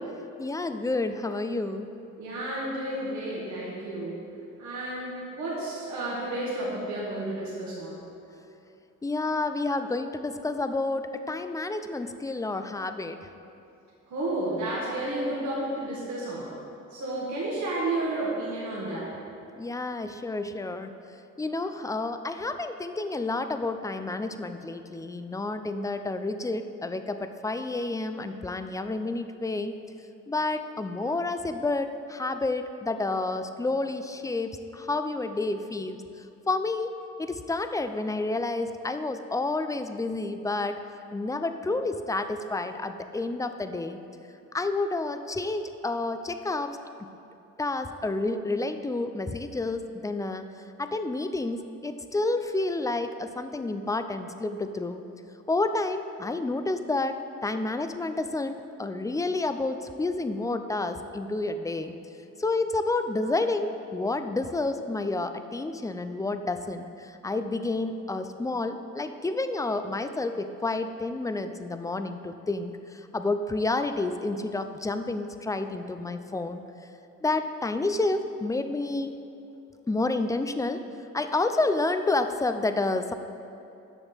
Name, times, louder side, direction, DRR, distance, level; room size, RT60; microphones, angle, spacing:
voice 1, 0.4-1.9 9.0-13.2 19.6-20.9 21.4-29.7 30.3-36.0 36.5-40.8 41.1-44.0 44.5-46.7 47.6-50.5 50.8-55.0 55.5-57.2 57.4-62.0 62.4-76.6 77.2-79.1 79.9-80.8 81.1-83.1, left 2 dB, 10° left, 9 dB, 0.5 m, -29 dB
voice 2, 2.2-4.2 4.6-8.0 14.1-16.5 16.9-19.1, right 1 dB, 70° right, -7 dB, 2.1 m, -31 dB
6.9 x 6.3 x 7.1 m, 2.8 s
cardioid pair, 90°, 30 cm